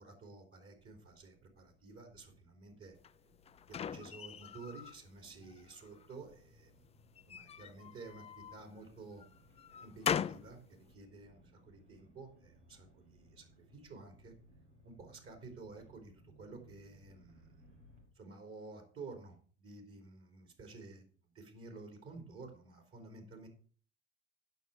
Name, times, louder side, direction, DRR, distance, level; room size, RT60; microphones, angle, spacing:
voice 1, 0.0-3.0 3.6-6.8 7.3-9.2 9.8-14.3 14.8-17.8 18.2-23.5, right 3 dB, 40° right, 4 dB, 3.4 m, -52 dB
sound 1, 0.7-18.1, equal, 85° right, 2.3 m, -65 dB
sound 2, 3.0-5.0 5.4-6.2 7.2-8.6 9.2-10.5, left 8 dB, 20° left, 0.4 m, -40 dB
9.1 x 6.3 x 6.8 m, 0.43 s
hypercardioid pair, 70°, 35 cm